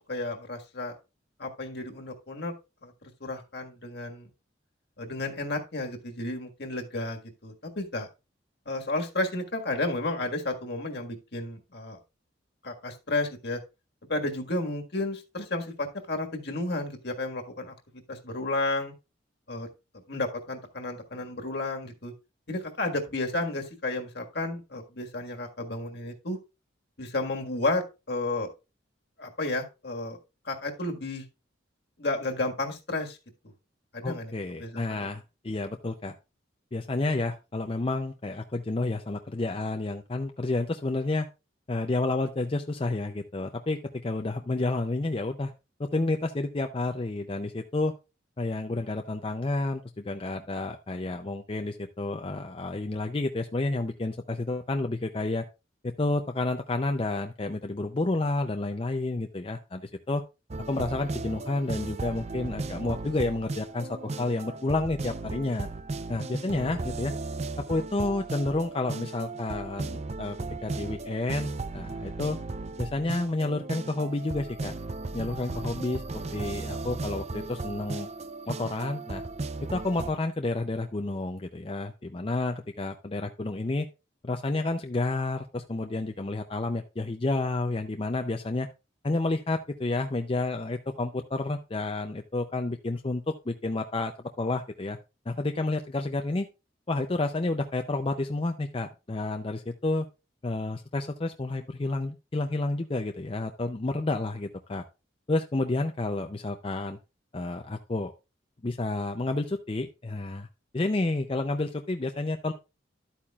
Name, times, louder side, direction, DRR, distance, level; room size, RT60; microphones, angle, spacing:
voice 1, 0.1-1.0 1.4-2.5 2.8-2.9 3.2-4.3 5.0-8.1 8.6-12.0 12.6-13.6 14.1-17.7 18.1-18.9 19.5-19.7 20.1-22.1 22.5-26.4 27.0-28.5 29.2-30.2 30.4-31.2 32.0-33.2 33.9-34.3 34.6-35.1, left 2 dB, 60° left, 3 dB, 1.7 m, -32 dB
voice 2, 34.0-36.1 36.7-41.3 41.7-45.5 45.8-47.9 48.4-55.5 55.8-60.2 60.7-65.7 66.1-67.1 67.6-72.4 72.8-74.7 75.1-78.1 78.5-79.2 79.7-83.9 84.2-88.7 89.0-95.0 95.3-96.5 96.9-100.1 100.4-104.8 105.3-107.0 107.3-108.1 108.6-110.5 110.7-112.5, left 2 dB, 30° left, 5 dB, 0.5 m, -30 dB
sound 1, 60.5-80.1, right 3 dB, 35° right, 0.5 m, -36 dB
12.0 x 8.6 x 2.4 m, 0.28 s
head